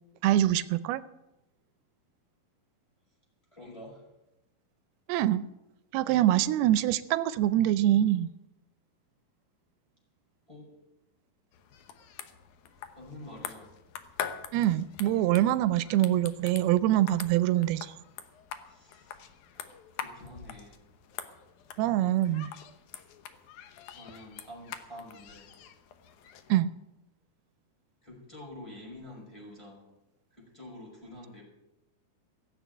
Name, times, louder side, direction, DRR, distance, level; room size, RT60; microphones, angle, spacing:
voice 1, 0.2-1.0 5.1-5.4 5.9-8.3 14.5-17.9 21.8-22.5 26.5-26.7, right 13 dB, 90° right, 14 dB, 2.6 m, -24 dB
voice 2, 3.5-4.1 10.5-10.7 12.9-13.7 18.7-19.2 19.5-20.9 24.0-25.5 28.0-29.9 30.3-31.4, left 1 dB, 5° left, -4 dB, 5.5 m, -47 dB
sound 1, 11.5-26.5, left 9 dB, 70° left, 2.0 m, -44 dB
16.5 x 7.7 x 9.1 m, 0.92 s
omnidirectional pair, 4.4 m